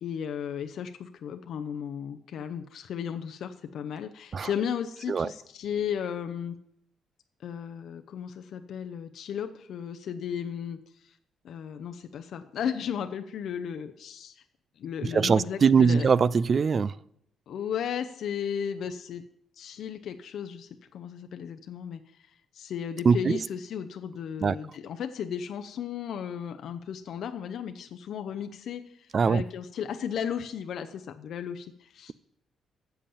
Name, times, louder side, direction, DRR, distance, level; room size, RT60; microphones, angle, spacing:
voice 1, 0.0-6.6 7.4-11.2 11.4-14.4 14.8-16.1 17.5-19.2 19.6-32.1, left 8 dB, 70° left, 7 dB, 0.6 m, -35 dB
voice 2, 15.1-16.9 23.1-23.4 24.4-24.6 29.1-29.4, right 5 dB, 45° right, 20 dB, 0.4 m, -22 dB
7.7 x 7.0 x 7.2 m, 0.74 s
cardioid pair, 90°, 0 cm